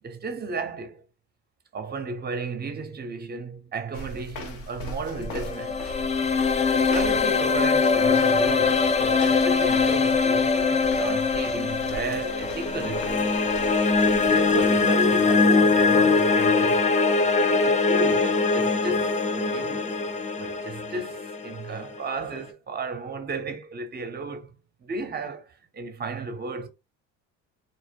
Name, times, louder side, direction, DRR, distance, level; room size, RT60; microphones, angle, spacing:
voice 1, 0.0-1.0 1.7-5.9 6.7-13.4 14.2-17.0 17.4-19.9 20.4-24.5 24.8-26.7, right 3 dB, 25° right, 0.6 m, -34 dB
sound 1, 3.9-15.1, left 2 dB, 85° left, 0.7 m, -40 dB
sound 2, 5.2-22.3, left 4 dB, 20° left, 0.3 m, -22 dB
2.0 x 2.0 x 3.3 m
hypercardioid pair, 65°, 38 cm